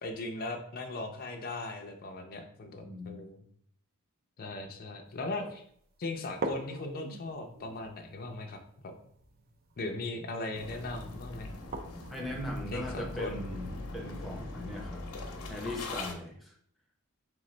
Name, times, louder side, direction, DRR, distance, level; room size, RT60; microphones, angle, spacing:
voice 1, 0.0-3.4 4.4-5.6 6.0-8.6 8.8-8.9 9.8-11.5 12.7-13.4, left 2 dB, 40° left, 2 dB, 0.4 m, -38 dB
voice 2, 2.8-3.2 5.4-5.5 12.1-15.1 15.5-16.5, left 1 dB, ahead, -1 dB, 0.7 m, -39 dB
sound 1, 5.1-5.2 5.7-5.8 6.3-12.2, right 2 dB, 40° right, 0.5 m, -43 dB
sound 2, 10.5-16.1, left 2 dB, 85° left, 0.7 m, -41 dB
3.8 x 3.4 x 3.1 m, 0.64 s
head